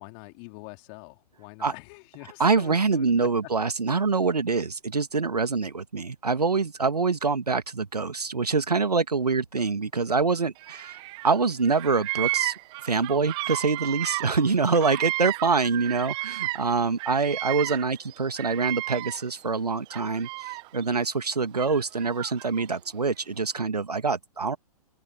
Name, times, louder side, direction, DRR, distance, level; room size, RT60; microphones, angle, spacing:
voice 1, 0.0-3.1, left 35 dB, 35° left, 3.2 m, -44 dB
voice 2, 2.4-12.5 12.8-24.6, right 4 dB, 80° right, 2.0 m, -25 dB
Bird vocalization bird call bird song, 10.6-11.4 11.6-16.7 17.0-19.4 19.9-20.8 21.6-22.6, right 23 dB, 25° right, 0.7 m, -33 dB
open air
figure-of-eight pair, 120°, 20 cm